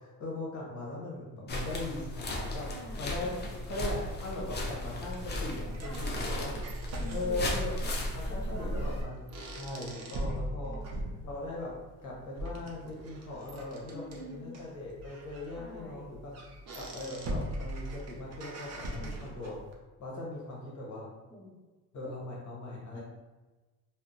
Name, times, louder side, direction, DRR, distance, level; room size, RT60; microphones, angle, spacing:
voice 1, 0.0-2.7 3.0-3.3 3.7-6.5 7.1-7.7 8.1-9.2 9.5-10.8 11.2-11.7 12.0-16.3 16.7-19.6 20.0-21.1 21.9-23.0, left 2 dB, 50° left, -4 dB, 0.9 m, -39 dB
sound 1, 1.5-9.0, left 1 dB, 30° left, 0.5 m, -35 dB
voice 2, 2.6-3.7 5.8-6.6 7.0-7.9 8.2-8.9 10.6-11.1 13.9-14.6 15.6-16.1 19.0-19.3 21.3-21.5 22.0-22.1 22.9-23.0, right 1 dB, 10° left, -7 dB, 1.0 m, -47 dB
sound 2, 4.7-19.7, right 1 dB, 45° right, 0.6 m, -41 dB
2.7 x 2.1 x 3.7 m, 1.2 s
cardioid pair, 125°, 37 cm